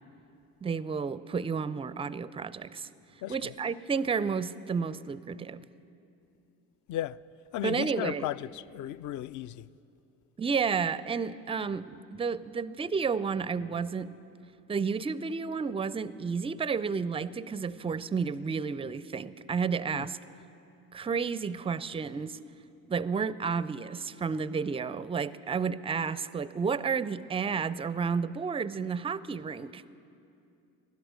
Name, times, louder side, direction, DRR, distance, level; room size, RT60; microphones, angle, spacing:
voice 1, 0.6-2.9 3.3-5.7 7.6-8.3 10.4-14.1 14.7-20.2 20.9-22.4 22.9-29.8, right 5 dB, 15° right, 0.4 m, -31 dB
voice 2, 3.2-3.5 6.9-7.2 7.5-9.7 19.9-20.1, left 13 dB, 45° left, 0.4 m, -35 dB
19.5 x 11.5 x 6.3 m
hypercardioid pair, 50°, 45 cm